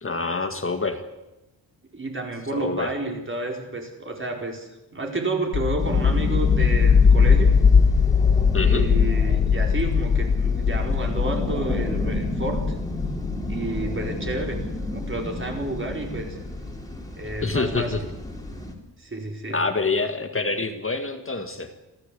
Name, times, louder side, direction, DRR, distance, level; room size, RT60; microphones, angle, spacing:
voice 1, 0.0-1.0 2.6-2.9 8.5-8.9 17.4-18.0 19.5-21.7, left 3 dB, 30° left, 6 dB, 1.9 m, -26 dB
voice 2, 1.9-7.5 8.5-12.6 13.5-14.7 14.9-16.4 17.2-18.0 19.0-19.6, right 2 dB, 30° right, 2 dB, 4.7 m, -30 dB
sound 1, 5.5-16.2, left 6 dB, 65° left, 1.5 m, -21 dB
sound 2, 5.8-18.7, left 1 dB, 10° left, 4.0 m, -32 dB
27.0 x 16.0 x 8.5 m, 0.97 s
wide cardioid pair, 145°, 41 cm